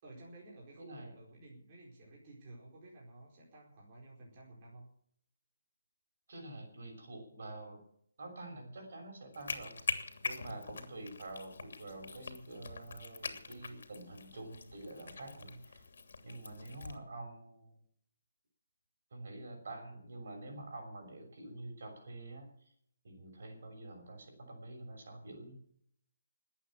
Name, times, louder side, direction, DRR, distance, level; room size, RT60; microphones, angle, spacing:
voice 1, 0.0-4.9, right 2 dB, 25° right, -4 dB, 4.6 m, -54 dB
voice 2, 0.8-1.1 6.3-7.8 8.2-9.8 10.2-15.9 16.2-17.8 19.1-22.7 23.0-25.5, right 2 dB, 55° right, 3 dB, 6.3 m, -47 dB
sound 1, 9.3-17.0, left 4 dB, 60° left, 2.9 m, -43 dB
20.5 x 8.7 x 7.5 m, 0.66 s
hypercardioid pair, 170°, 0 cm